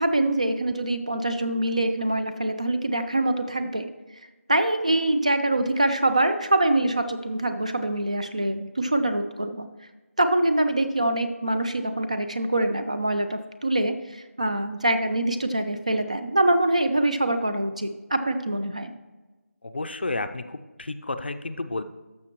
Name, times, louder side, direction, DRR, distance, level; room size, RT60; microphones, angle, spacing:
voice 1, 0.0-3.9 4.5-9.7 10.2-18.9, right 1 dB, 30° right, 8 dB, 0.3 m, -24 dB
voice 2, 19.6-21.8, left 2 dB, 45° left, 10 dB, 0.5 m, -31 dB
13.0 x 6.0 x 3.0 m, 1.2 s
figure-of-eight pair, 175°, 8 cm